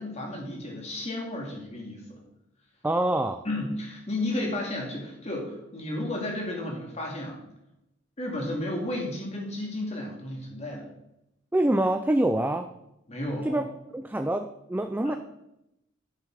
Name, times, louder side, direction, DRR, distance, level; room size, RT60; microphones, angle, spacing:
voice 1, 0.0-2.2 3.4-7.4 8.2-10.9 13.1-13.6 15.0-15.2, left 1 dB, 35° left, -1 dB, 2.6 m, -33 dB
voice 2, 2.8-3.4 11.5-12.7 13.4-13.6 13.9-15.1, right 1 dB, 10° right, 7 dB, 0.4 m, -25 dB
9.8 x 7.6 x 4.8 m, 0.85 s
head